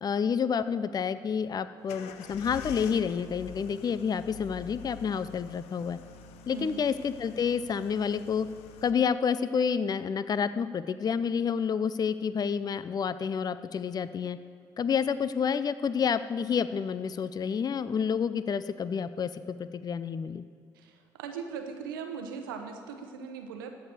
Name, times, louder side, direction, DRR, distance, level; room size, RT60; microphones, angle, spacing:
voice 1, 0.0-6.0 6.5-8.5 8.8-14.4 14.8-20.4, left 6 dB, 35° left, 14 dB, 0.5 m, -29 dB
sound 1, 1.9-8.9, left 7 dB, 70° left, 0.7 m, -47 dB
voice 2, 6.5-6.9 20.7-23.7, right 6 dB, 85° right, 5 dB, 0.9 m, -39 dB
13.5 x 4.7 x 8.1 m, 2.4 s
hypercardioid pair, 55°, 11 cm